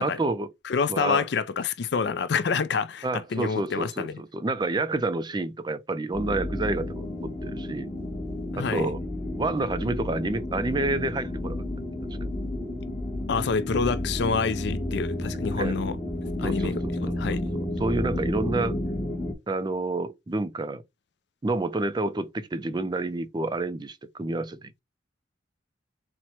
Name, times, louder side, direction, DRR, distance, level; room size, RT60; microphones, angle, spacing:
voice 1, 0.0-0.5 0.9-1.2 3.0-7.9 8.6-9.0 9.4-11.6 15.6-15.8 16.4-18.8 19.5-20.8 21.4-24.8, right 2 dB, 20° right, 0.4 m, -29 dB
voice 2, 0.6-4.2 8.5-8.9 13.3-16.0 16.4-17.5, left 5 dB, 60° left, 0.4 m, -27 dB
sound 1, 6.1-19.3, left 1 dB, 25° left, 1.0 m, -31 dB
4.3 x 2.1 x 4.4 m
head